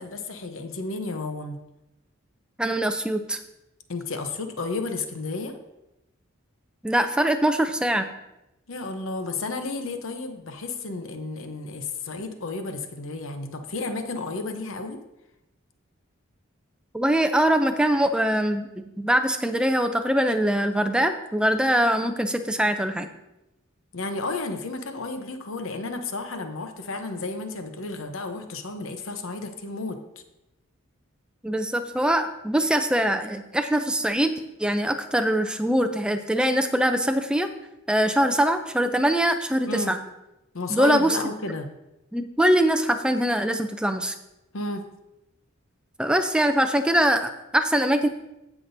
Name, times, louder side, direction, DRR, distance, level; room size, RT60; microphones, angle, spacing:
voice 1, 0.0-1.6 3.9-5.6 8.7-15.0 23.9-30.0 39.7-40.0 40.5-41.7 44.5-44.9, left 3 dB, 80° left, 7 dB, 0.8 m, -32 dB
voice 2, 2.6-3.4 6.8-8.1 16.9-23.1 31.4-37.5 37.9-40.0 40.7-41.2 42.1-44.1 46.0-48.1, right 1 dB, 5° right, 8 dB, 0.5 m, -23 dB
15.5 x 5.9 x 2.7 m, 0.92 s
head